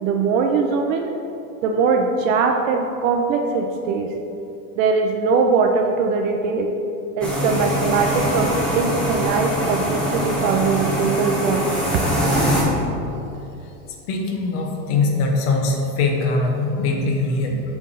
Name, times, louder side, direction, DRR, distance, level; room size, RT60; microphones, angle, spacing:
voice 1, 0.0-1.1 1.6-4.1 4.8-6.7 7.2-11.8, right 4 dB, 60° right, 3 dB, 0.6 m, -21 dB
sound 1, 7.2-12.6, equal, ahead, 0.5 m, -23 dB
voice 2, 14.1-17.6, left 3 dB, 45° left, 1 dB, 0.9 m, -21 dB
7.5 x 3.5 x 5.4 m, 2.8 s
supercardioid pair, 170°, 45 cm